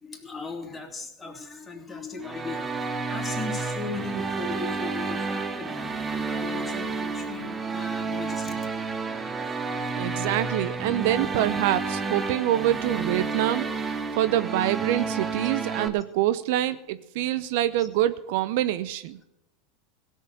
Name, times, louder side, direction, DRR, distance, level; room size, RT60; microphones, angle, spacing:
voice 1, 0.0-10.3 17.8-17.9, left 3 dB, 20° left, 3 dB, 2.9 m, -38 dB
sound 1, 2.2-15.9, right 4 dB, 20° right, 1.3 m, -30 dB
voice 2, 10.0-19.2, right 13 dB, 65° right, 14 dB, 0.7 m, -26 dB
16.5 x 7.3 x 7.3 m, 0.85 s
hypercardioid pair, 90°, 0 cm